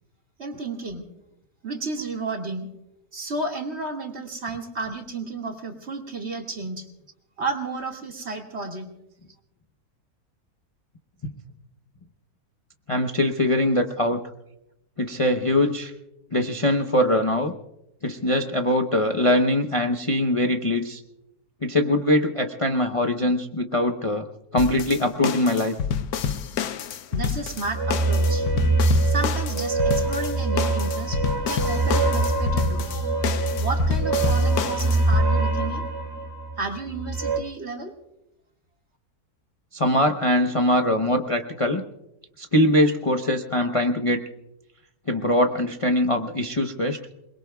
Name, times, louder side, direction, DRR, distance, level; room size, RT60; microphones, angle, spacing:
voice 1, 0.4-1.0 1.6-2.7 3.1-6.9 7.4-8.9 27.1-28.5 29.0-33.1 33.6-35.8 36.6-37.9, right 3 dB, 45° right, 2 dB, 2.3 m, -32 dB
voice 2, 12.9-14.2 15.0-15.9 16.3-17.5 18.0-21.0 21.6-24.3 24.5-25.7 39.7-41.8 42.4-44.2 45.1-47.0, left 1 dB, 25° left, 4 dB, 0.8 m, -22 dB
sound 1, 24.6-35.3, left 8 dB, 80° left, 1.3 m, -29 dB
sound 2, 27.7-37.4, right 2 dB, 15° right, 1.3 m, -23 dB
28.0 x 21.5 x 2.3 m, 0.87 s
omnidirectional pair, 1.6 m